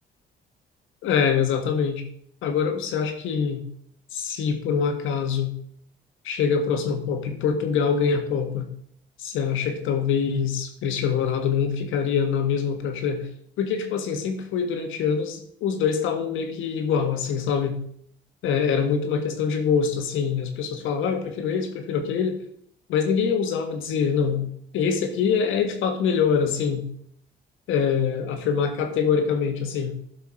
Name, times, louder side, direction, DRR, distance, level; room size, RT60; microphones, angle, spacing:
voice 1, 1.0-2.0 2.4-3.6 4.1-5.5 6.2-8.7 9.2-13.3 13.6-17.8 18.4-22.4 22.9-24.5 24.7-26.8 27.7-29.9, left 6 dB, 90° left, 5 dB, 1.5 m, -24 dB
11.5 x 5.8 x 4.5 m, 0.62 s
cardioid pair, 90°, 20 cm